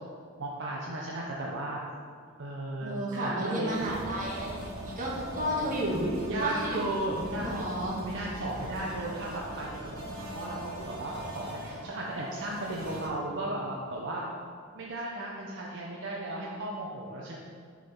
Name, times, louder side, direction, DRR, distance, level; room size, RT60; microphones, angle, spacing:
voice 1, 0.4-1.8 2.4-3.9 5.4-7.7 8.0-9.8 10.3-14.3 14.7-17.4, right 1 dB, 60° right, -3 dB, 0.7 m, -35 dB
voice 2, 2.8-6.0 6.4-6.8 7.4-8.0, right 1 dB, 40° right, -4 dB, 1.4 m, -32 dB
sound 1, 3.6-13.1, right 1 dB, 85° right, 1.3 m, -41 dB
7.2 x 3.9 x 5.3 m, 2.1 s
head